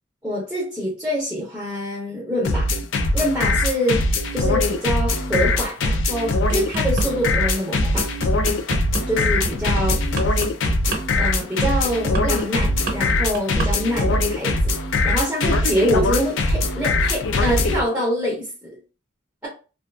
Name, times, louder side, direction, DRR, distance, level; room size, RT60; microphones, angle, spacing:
voice 1, 0.2-2.7 3.1-4.0 4.3-8.1 9.0-9.9 10.3-10.4 11.2-14.7 15.0-18.7, equal, 10° right, -5 dB, 0.7 m, -25 dB
sound 1, 2.4-17.8, left 2 dB, 75° left, 0.4 m, -21 dB
sound 2, 6.3-7.1 7.5-13.7 14.0-14.3, right 2 dB, 50° right, 0.8 m, -29 dB
2.5 x 2.4 x 2.2 m, 0.33 s
head